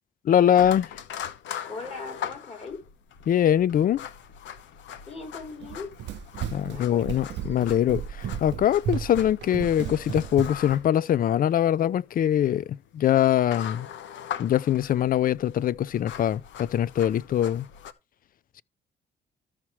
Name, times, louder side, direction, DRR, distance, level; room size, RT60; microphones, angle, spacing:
voice 1, 0.3-0.9 3.3-4.0 6.5-13.9 14.4-17.7, left 10 dB, 50° left, 0.4 m, -23 dB
sound 1, 0.6-17.9, left 9 dB, 85° left, 0.9 m, -41 dB
voice 2, 1.7-2.8 5.1-5.9 6.7-7.1, left 3 dB, 35° left, 4.4 m, -39 dB
Run, 5.6-10.8, right 9 dB, 75° right, 0.7 m, -34 dB
14.0 x 5.8 x 3.0 m
cardioid pair, 105°, 19 cm